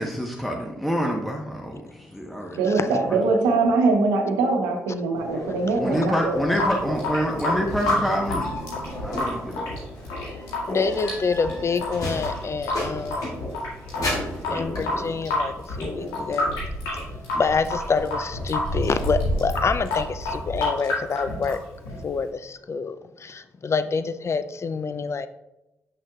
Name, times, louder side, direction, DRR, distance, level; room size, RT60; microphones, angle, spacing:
voice 1, 0.0-3.2 5.8-8.5 9.0-9.7, equal, ahead, 0 dB, 1.1 m, -27 dB
voice 2, 2.5-6.4, right 3 dB, 85° right, 3 dB, 0.9 m, -22 dB
sound 1, 5.1-20.4, equal, 60° left, 2.4 m, -33 dB
Water tap faucet / Sink (filling or washing) / Drip, 6.3-22.3, left 2 dB, 90° left, 1.9 m, -30 dB
voice 3, 10.7-13.4 14.5-16.6 17.3-21.6 22.0-25.3, left 5 dB, 45° left, 12 dB, 0.5 m, -27 dB
7.7 x 6.3 x 2.4 m, 0.94 s
hypercardioid pair, 45°, 7 cm